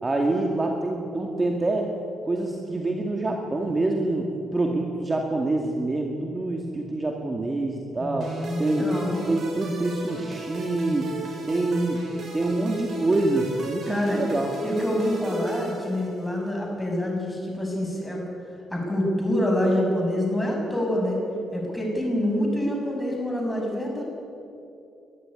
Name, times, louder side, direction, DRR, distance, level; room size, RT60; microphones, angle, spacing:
voice 1, 0.0-1.9 2.3-8.9 9.3-11.1 11.5-12.0 12.3-14.5, right 2 dB, 25° right, 1 dB, 2.2 m, -26 dB
voice 2, 8.0-9.2 13.9-14.2 14.6-18.2 18.7-21.2 21.5-24.0, left 1 dB, 10° left, -1 dB, 6.9 m, -26 dB
sound 1, 8.2-16.5, right 1 dB, 55° right, 6.9 m, -36 dB
21.0 x 13.0 x 9.7 m, 2.7 s
cardioid pair, 90°, 0 cm